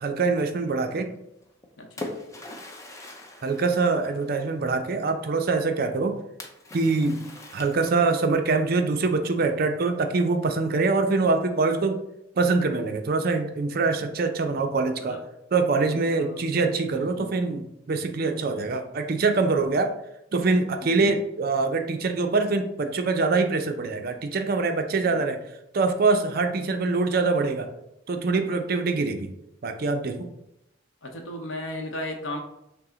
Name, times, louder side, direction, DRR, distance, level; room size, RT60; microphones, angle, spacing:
voice 1, 0.0-1.1 3.4-6.2 6.7-7.2 7.5-12.0 12.4-15.2 15.5-19.9 20.3-25.4 25.7-27.7 28.1-29.3 29.6-30.3, right 3 dB, 50° right, 6 dB, 0.4 m, -24 dB
Splash splatter, 1.4-4.6 6.4-8.3, left 2 dB, 15° left, 0.4 m, -41 dB
voice 2, 1.8-2.1 15.0-15.2 15.9-16.4 16.9-17.3 20.8-21.2 25.0-25.2 31.0-32.4, left 1 dB, 75° left, 4 dB, 0.8 m, -36 dB
5.6 x 2.0 x 3.7 m, 0.83 s
head